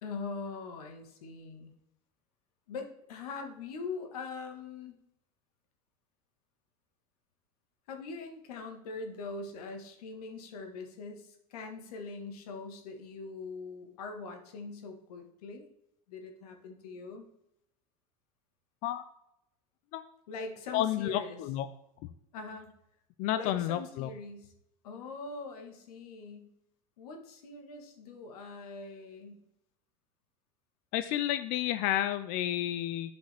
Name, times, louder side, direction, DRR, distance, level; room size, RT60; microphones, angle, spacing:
voice 1, 0.0-1.7 2.7-5.0 7.9-15.7 16.1-17.3 20.3-21.4 22.3-22.7 23.3-24.5 24.8-26.5 27.0-29.4, left 4 dB, 90° left, 5 dB, 1.5 m, -42 dB
voice 2, 20.7-21.7 23.2-24.1 30.9-33.1, left 12 dB, 50° left, 11 dB, 0.4 m, -31 dB
9.0 x 5.2 x 3.4 m, 0.80 s
supercardioid pair, 145°, 19 cm